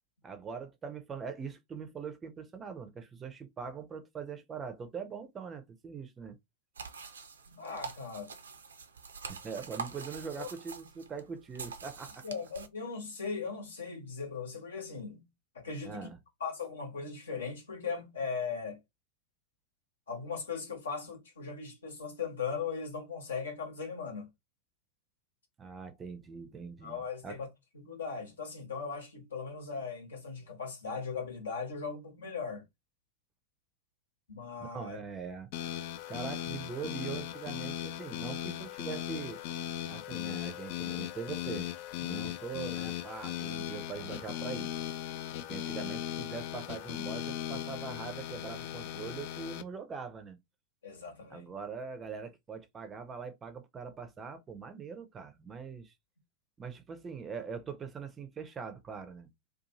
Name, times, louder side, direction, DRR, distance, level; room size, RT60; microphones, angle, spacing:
voice 1, 0.2-6.4 9.3-12.2 15.8-16.2 25.6-27.4 34.7-35.5 36.1-39.4 39.9-41.7 42.0-44.7 45.5-50.4 51.3-55.9 56.6-59.3, right 6 dB, 20° right, 0.5 m, -42 dB
sound 1, 6.8-12.7, right 5 dB, 70° right, 0.4 m, -45 dB
voice 2, 7.5-8.3 10.4-10.5 12.2-15.2 15.5-16.1 16.4-18.8 20.1-24.3 26.8-27.5 27.7-32.6 34.3-35.0 50.8-51.5, left 5 dB, 70° left, 1.1 m, -38 dB
sound 2, 35.5-49.6, left 11 dB, 50° left, 0.3 m, -38 dB
2.6 x 2.3 x 2.9 m
figure-of-eight pair, 90°, 0 cm